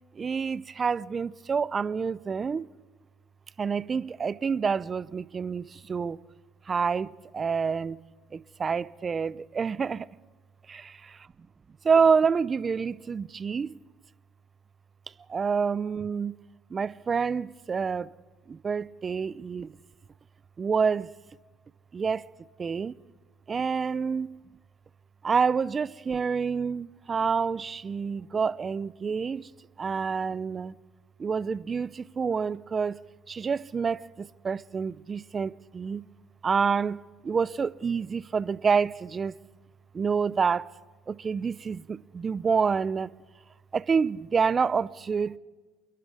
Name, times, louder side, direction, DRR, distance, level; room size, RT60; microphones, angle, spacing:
voice 1, 0.2-2.6 3.6-5.6 5.9-6.2 6.7-8.0 8.3-10.1 10.7-10.8 11.8-13.7 15.3-16.3 16.7-18.1 18.5-19.7 20.6-21.1 21.9-22.3 22.6-22.9 23.5-24.3 25.2-29.4 29.8-30.7 31.2-33.0 33.3-36.0 36.4-39.3 39.9-40.6 41.1-43.1 43.7-45.4, right 5 dB, 30° right, 0.6 m, -27 dB
28.5 x 11.0 x 8.3 m
supercardioid pair, 100°, 0 cm